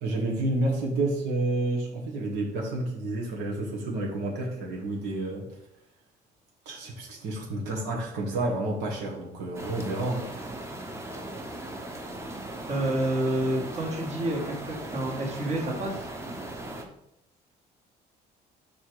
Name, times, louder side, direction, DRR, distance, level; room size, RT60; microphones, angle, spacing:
voice 1, 0.0-5.4 6.6-10.2, right 2 dB, 85° right, -2 dB, 1.5 m, -30 dB
sound 1, 9.5-16.8, right 1 dB, 15° right, 0.9 m, -38 dB
voice 2, 12.7-16.1, right 1 dB, 40° right, -1 dB, 1.6 m, -29 dB
4.7 x 4.4 x 4.7 m, 0.82 s
cardioid pair, 110°, 17 cm